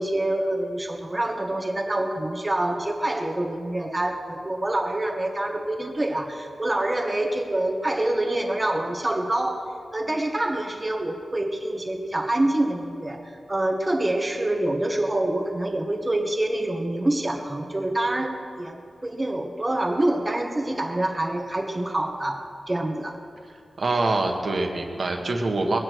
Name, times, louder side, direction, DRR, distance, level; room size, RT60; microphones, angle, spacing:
voice 1, 0.0-9.7 9.9-23.1, right 1 dB, 20° right, 2 dB, 1.4 m, -26 dB
voice 2, 23.8-25.8, right 2 dB, 50° right, 3 dB, 1.5 m, -24 dB
21.5 x 8.8 x 4.6 m, 2.4 s
wide cardioid pair, 155°, 0 cm